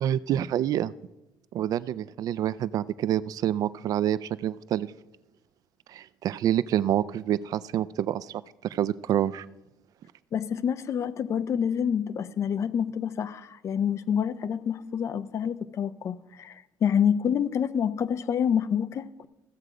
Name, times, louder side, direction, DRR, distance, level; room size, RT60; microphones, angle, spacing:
voice 1, 0.0-0.9 1.5-4.9 5.9-9.5, right 11 dB, 55° right, 0.3 m, -27 dB
voice 2, 10.3-19.3, left 8 dB, 40° left, 0.5 m, -27 dB
15.0 x 7.8 x 4.9 m
cardioid pair, 165°, 8 cm